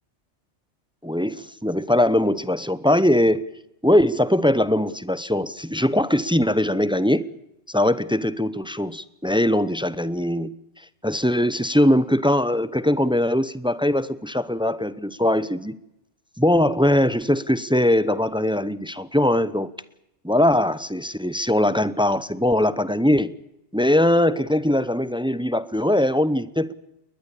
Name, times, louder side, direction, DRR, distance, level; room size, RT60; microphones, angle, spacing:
voice 1, 1.0-3.5 3.8-7.3 7.7-10.5 11.0-15.8 16.4-19.7 20.2-23.3 23.7-26.7, left 1 dB, 5° right, 16 dB, 0.6 m, -21 dB
21.0 x 20.5 x 8.5 m, 0.86 s
omnidirectional pair, 1.3 m